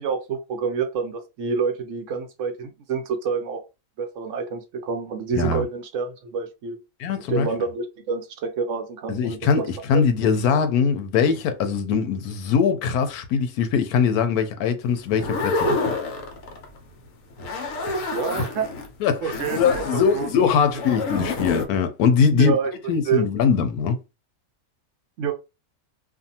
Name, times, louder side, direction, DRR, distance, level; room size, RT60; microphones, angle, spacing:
voice 1, 0.0-3.6 4.0-6.8 7.3-9.6 9.9-10.0 18.1-18.7 19.2-20.5 22.3-22.7 23.0-23.2 25.2-25.3, right 5 dB, 70° right, 0.8 m, -27 dB
voice 2, 5.3-5.6 7.0-7.5 9.1-9.6 9.9-15.9 18.3-18.4 19.0-22.6 22.9-24.0, left 6 dB, 90° left, 1.1 m, -21 dB
sound 1, 15.1-16.8 17.3-18.9 19.3-21.7, left 3 dB, 70° left, 1.1 m, -28 dB
2.5 x 2.5 x 2.7 m
omnidirectional pair, 1.5 m